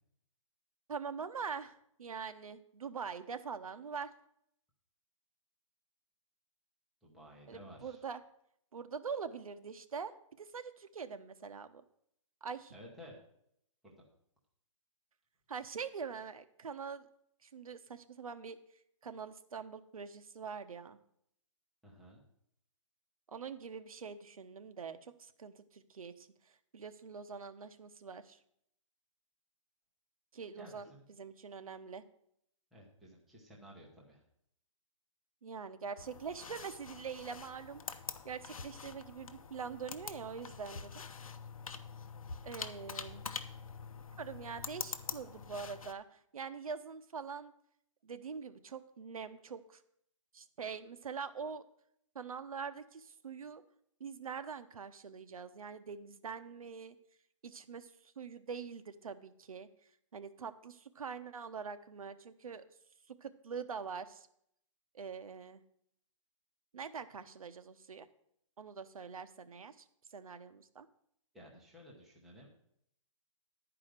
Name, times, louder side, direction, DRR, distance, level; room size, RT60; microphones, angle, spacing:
voice 1, 0.9-4.1 7.5-8.2 8.7-11.8 12.4-12.7 15.5-17.1 17.4-18.6 19.0-21.0 23.3-26.3 26.7-28.4 30.3-32.0 35.4-37.8 38.2-41.0 42.4-43.2 44.2-47.5 48.0-49.8 50.3-51.6 52.1-53.6 54.0-56.9 57.4-59.7 60.1-62.6 63.1-64.3 64.9-65.6 66.7-68.1 68.6-70.9, right 6 dB, 80° right, 11 dB, 1.0 m, -44 dB
voice 2, 7.0-8.0 12.7-13.1 13.8-13.9 21.8-22.2 30.6-31.1 32.7-34.2 71.3-72.5, equal, ahead, -4 dB, 0.5 m, -54 dB
sound 1, 36.0-45.9, left 5 dB, 85° left, 0.9 m, -45 dB
11.0 x 4.9 x 7.4 m, 0.72 s
hypercardioid pair, 175°, 18 cm